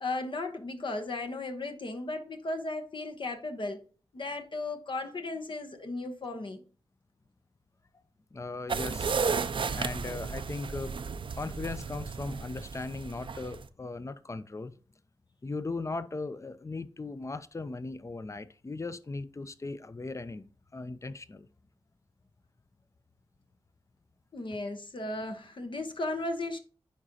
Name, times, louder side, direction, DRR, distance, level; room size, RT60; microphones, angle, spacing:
voice 1, 0.0-3.8 4.1-6.6 24.3-26.6, left 2 dB, 60° left, 0.9 m, -35 dB
voice 2, 8.3-9.2 9.7-10.9 11.3-14.7 15.4-20.4 20.7-21.5, left 3 dB, 30° left, 0.6 m, -38 dB
sound 1, 8.7-13.7, right 5 dB, 60° right, 0.4 m, -33 dB
9.8 x 3.8 x 2.8 m
cardioid pair, 45°, 10 cm